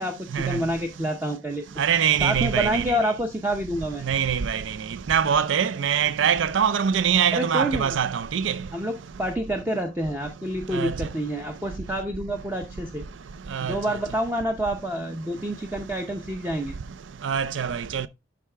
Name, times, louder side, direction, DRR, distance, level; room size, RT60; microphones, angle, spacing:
voice 1, 0.0-1.7 2.2-4.0 7.3-8.0 8.7-13.0 13.6-16.7, equal, 10° right, 0.6 m, -28 dB
voice 2, 1.8-3.0 4.0-4.8 5.1-8.6 10.7-11.0 13.5-14.0 17.2-18.1, right 8 dB, 80° right, 0.5 m, -23 dB
11.0 x 4.7 x 3.3 m
head